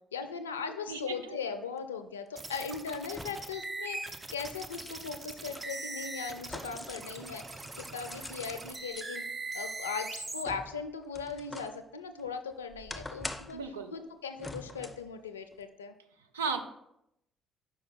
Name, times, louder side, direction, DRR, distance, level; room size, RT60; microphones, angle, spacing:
voice 1, 0.1-9.2 9.5-13.6 13.9-15.9, left 5 dB, 85° left, 9 dB, 0.3 m, -39 dB
voice 2, 0.9-1.3 13.5-13.9 16.3-16.6, right 5 dB, 80° right, 6 dB, 0.4 m, -35 dB
sound 1, 1.8-1.9 3.1-3.6 4.0-7.2 7.5-9.1 9.6-11.8 12.2-13.7 14.4-15.1 15.5-15.6, left 2 dB, 15° left, 0.5 m, -45 dB
sound 2, 2.4-10.4, right 3 dB, 25° right, 0.6 m, -41 dB
5.2 x 4.6 x 4.0 m, 0.80 s
figure-of-eight pair, 45°, 0 cm